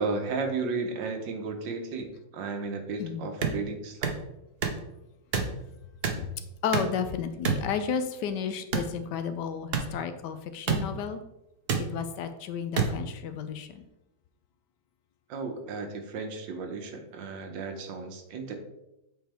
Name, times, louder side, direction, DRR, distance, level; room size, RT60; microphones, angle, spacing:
voice 1, 0.0-4.1 15.3-18.5, right 4 dB, 90° right, 5 dB, 1.6 m, -34 dB
sound 1, 3.4-3.6 4.0-4.2 4.6-4.8 5.3-5.5 6.0-6.2 6.7-7.0 7.4-7.6 8.7-8.9 9.7-9.9 10.7-10.8 11.7-11.8 12.8-12.9, right 6 dB, 55° right, 0.6 m, -26 dB
voice 2, 6.6-11.2 11.8-13.8, left 7 dB, 75° left, 10 dB, 1.1 m, -32 dB
7.7 x 4.5 x 3.4 m, 0.89 s
omnidirectional pair, 2.0 m